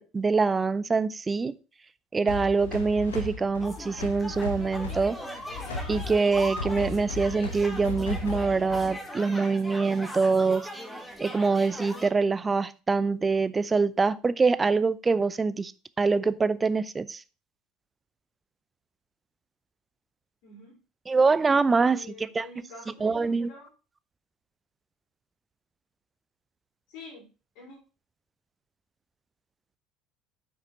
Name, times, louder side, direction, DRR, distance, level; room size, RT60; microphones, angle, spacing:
voice 1, 0.0-1.6 2.1-5.2 5.9-10.7 11.2-15.7 16.0-17.2 21.1-22.5 23.0-23.5, right 4 dB, 20° right, 0.5 m, -24 dB
sound 1, 2.3-9.0, left 3 dB, 70° left, 1.5 m, -37 dB
sound 2, 3.6-12.1, left 1 dB, 5° left, 1.9 m, -40 dB
voice 2, 20.4-20.8 21.8-23.7 26.9-27.3 27.5-27.8, left 2 dB, 55° left, 4.7 m, -47 dB
9.3 x 6.0 x 4.2 m
figure-of-eight pair, 65°, 0 cm